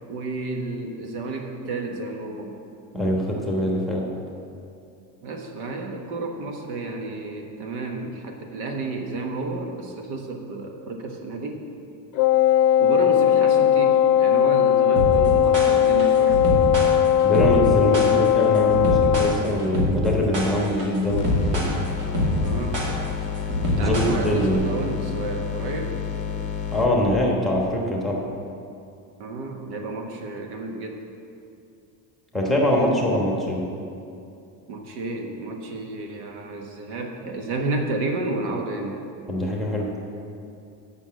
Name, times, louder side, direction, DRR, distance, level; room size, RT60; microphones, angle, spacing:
voice 1, 0.1-2.5 5.2-11.6 12.8-16.5 22.3-22.8 23.8-26.0 29.2-31.1 34.6-39.0, right 2 dB, 85° right, 3 dB, 1.4 m, -31 dB
voice 2, 2.9-4.0 17.2-21.8 23.8-24.6 26.7-28.2 32.3-33.6 39.3-39.9, left 1 dB, ahead, -2 dB, 1.1 m, -23 dB
Wind instrument woodwind instrument, 12.2-19.5, left 10 dB, 90° left, 0.6 m, -18 dB
sound 1, 15.0-24.6, equal, 65° right, 2.5 m, -25 dB
sound 2, 21.2-26.9, left 7 dB, 15° left, 0.7 m, -30 dB
8.2 x 6.0 x 7.5 m, 2.6 s
cardioid pair, 155°, 42 cm